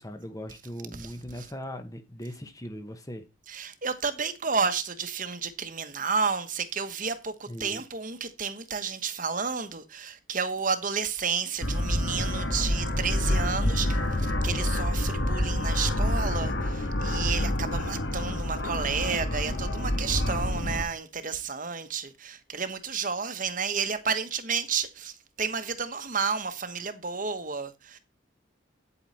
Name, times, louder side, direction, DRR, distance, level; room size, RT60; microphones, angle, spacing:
voice 1, 0.0-3.3 7.5-7.8, equal, 15° left, 1.1 m, -39 dB
voice 2, 3.5-25.1 25.4-28.0, right 5 dB, 40° right, 1.1 m, -31 dB
sound 1, 11.6-20.8, left 1 dB, 55° left, 1.6 m, -27 dB
9.2 x 8.3 x 4.2 m
head